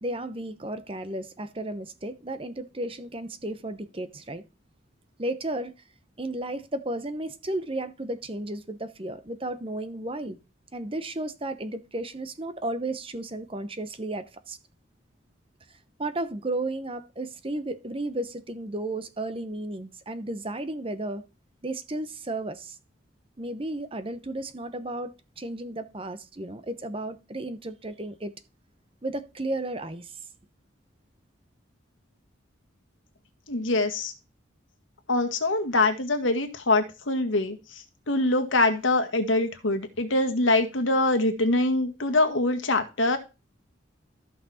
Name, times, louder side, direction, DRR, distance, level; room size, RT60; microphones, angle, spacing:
voice 1, 0.0-4.4 5.2-5.7 6.2-10.4 10.7-14.6 16.0-21.2 21.6-22.8 23.4-28.3 29.0-30.2, right 1 dB, 30° right, 0.9 m, -33 dB
voice 2, 33.5-34.1 35.1-37.6 38.1-43.2, left 2 dB, 80° left, 1.8 m, -24 dB
14.0 x 5.9 x 4.3 m
head